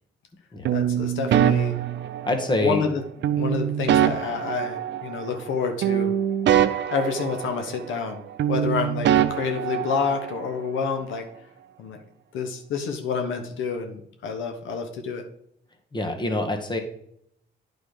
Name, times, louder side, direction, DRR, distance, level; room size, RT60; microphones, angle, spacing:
sound 1, 0.6-2.6 3.2-5.5 5.8-8.1 8.4-10.4, right 10 dB, 65° right, 0.5 m, -24 dB
voice 1, 0.7-1.7 2.6-3.0 3.3-6.1 6.9-8.2 8.5-11.2 11.8-12.0 12.3-15.2, left 5 dB, 80° left, 5 dB, 1.1 m, -28 dB
voice 2, 2.2-2.8 15.9-16.8, left 1 dB, 20° left, 5 dB, 1.3 m, -25 dB
9.1 x 4.2 x 5.0 m, 0.70 s
cardioid pair, 90°, 20 cm